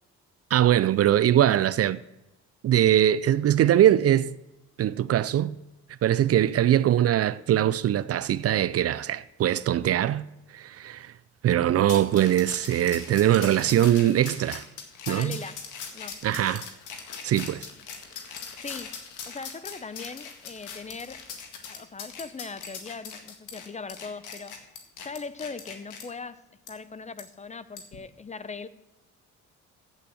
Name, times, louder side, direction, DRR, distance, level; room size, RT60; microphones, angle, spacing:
voice 1, 0.5-2.0 2.6-4.3 4.8-5.6 6.0-10.2 10.5-11.1 11.4-14.6 15.1-15.4 16.2-16.7 17.2-17.7, right 11 dB, 50° right, 0.5 m, -22 dB
sound 1, 11.9-26.0 26.7-26.8 27.2-27.3 27.8-28.0, left 6 dB, 80° left, 1.9 m, -40 dB
voice 2, 15.1-15.6 15.9-16.2 18.6-19.0 19.3-21.2 21.7-24.5 25.0-26.4 26.7-28.7, left 4 dB, 25° left, 0.6 m, -39 dB
8.4 x 7.9 x 7.8 m
cardioid pair, 90°, 30 cm